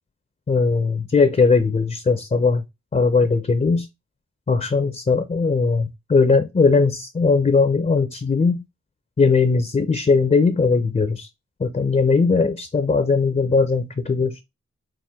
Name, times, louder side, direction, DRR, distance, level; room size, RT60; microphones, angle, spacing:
voice 1, 0.5-2.6 2.9-3.9 4.5-8.6 9.2-11.3 11.6-14.4, left 4 dB, 25° left, 0.5 m, -19 dB
4.3 x 2.1 x 3.4 m
wide cardioid pair, 75°, 29 cm